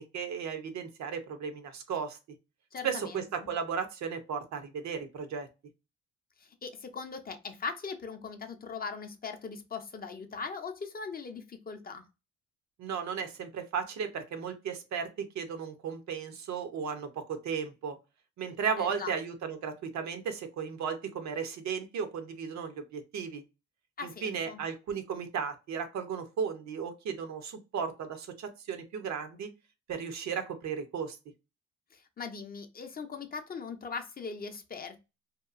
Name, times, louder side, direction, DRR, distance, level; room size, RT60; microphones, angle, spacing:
voice 1, 0.0-2.2 2.8-5.5 12.8-18.0 18.4-23.4 24.0-29.5 29.9-31.2, right 6 dB, 65° right, 0.7 m, -35 dB
voice 2, 2.7-3.5 6.4-12.1 18.8-19.1 24.0-24.6 31.9-35.0, left 5 dB, 30° left, 0.5 m, -40 dB
2.8 x 2.3 x 2.4 m
cardioid pair, 90°, 30 cm